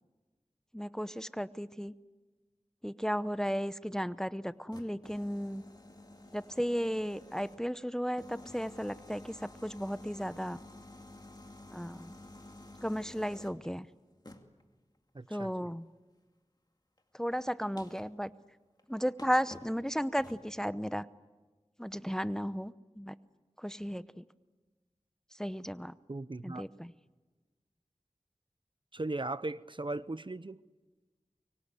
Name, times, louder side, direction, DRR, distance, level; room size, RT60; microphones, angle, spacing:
voice 1, 0.7-1.9 2.8-5.6 6.3-10.6 11.7-12.2 12.8-13.9 15.3-15.8 17.1-18.3 18.9-21.0 21.8-23.2 23.6-24.2 25.3-25.9 26.4-26.9, equal, 5° left, 14 dB, 0.8 m, -34 dB
sound 1, 4.5-7.8 8.2-13.7 14.2-14.6 17.0-17.1 17.8-18.2 18.8-18.9 19.2-19.8 20.2-20.5, left 1 dB, 35° left, 2.4 m, -51 dB
voice 2, 15.1-15.7 26.1-26.6 28.9-30.6, right 2 dB, 45° right, 15 dB, 0.7 m, -38 dB
24.5 x 23.0 x 8.1 m, 1.3 s
wide cardioid pair, 45°, 12 cm